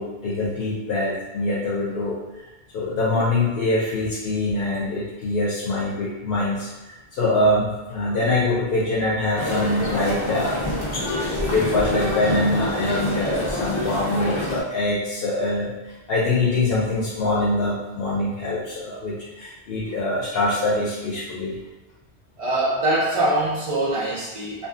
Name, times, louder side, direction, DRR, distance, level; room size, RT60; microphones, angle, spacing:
voice 1, 0.0-2.5 2.7-10.7 11.2-21.6, left 2 dB, 75° left, -6 dB, 0.8 m, -24 dB
sound 1, 9.4-14.6, left 1 dB, 45° left, 0.4 m, -26 dB
voice 2, 22.4-24.7, right 1 dB, 50° right, -7 dB, 0.4 m, -23 dB
2.6 x 2.2 x 2.4 m, 1.1 s
omnidirectional pair, 1.0 m